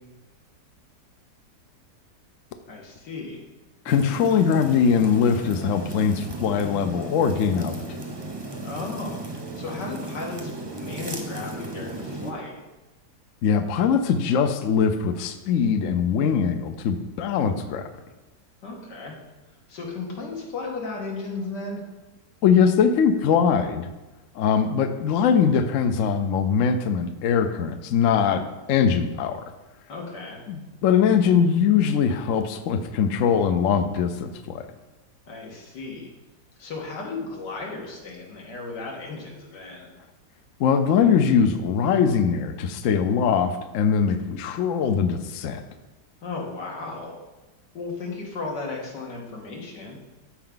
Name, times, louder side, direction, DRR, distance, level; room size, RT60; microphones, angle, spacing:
voice 1, 2.7-3.4 8.6-9.2 9.6-12.6 18.6-19.2 19.7-21.8 29.9-30.4 35.3-36.1 36.6-39.9 46.2-47.2 47.7-50.0, left 3 dB, 85° left, -2 dB, 2.3 m, -35 dB
voice 2, 3.8-8.0 13.4-17.9 22.4-23.9 24.3-29.5 30.5-34.7 40.6-45.6, left 7 dB, 65° left, 8 dB, 0.8 m, -22 dB
sound 1, 3.9-12.3, right 2 dB, 20° right, 0.7 m, -35 dB
13.0 x 4.6 x 3.9 m, 1.1 s
omnidirectional pair, 1.8 m